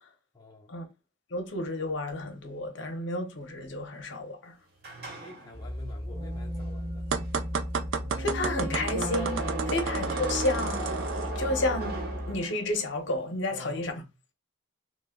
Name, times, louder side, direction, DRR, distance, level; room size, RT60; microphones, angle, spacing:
voice 1, 0.3-0.8 5.2-7.0 13.5-14.1, left 3 dB, 20° left, 0.5 m, -48 dB
voice 2, 1.3-4.5 8.2-10.8 11.4-12.0 12.3-14.0, left 2 dB, 60° left, 0.7 m, -31 dB
sound 1, 4.8-12.9, right 1 dB, 50° right, 1.0 m, -37 dB
sound 2, 5.5-12.4, equal, 10° right, 0.8 m, -36 dB
sound 3, 7.1-11.3, right 6 dB, 65° right, 0.4 m, -33 dB
3.1 x 2.0 x 3.5 m
head